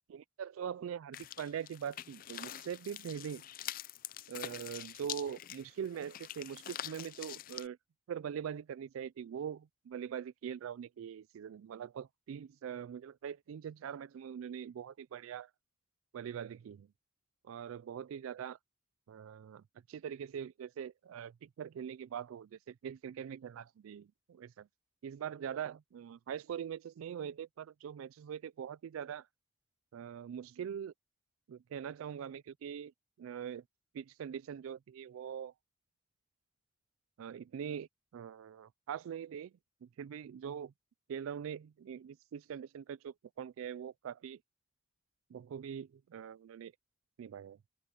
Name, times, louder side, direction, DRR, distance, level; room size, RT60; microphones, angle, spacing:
voice 1, 0.1-3.4 4.3-7.8 8.1-15.5 16.1-16.9 17.4-18.6 19.1-24.7 25.0-29.3 29.9-30.9 31.5-32.9 33.2-33.6 33.9-35.5 37.2-39.5 39.8-40.7 41.1-44.4 45.3-46.7 47.2-47.6, right 8 dB, 90° right, 0.3 m, -43 dB
sound 1, 1.1-7.7, left 12 dB, 45° left, 0.4 m, -45 dB
open air
head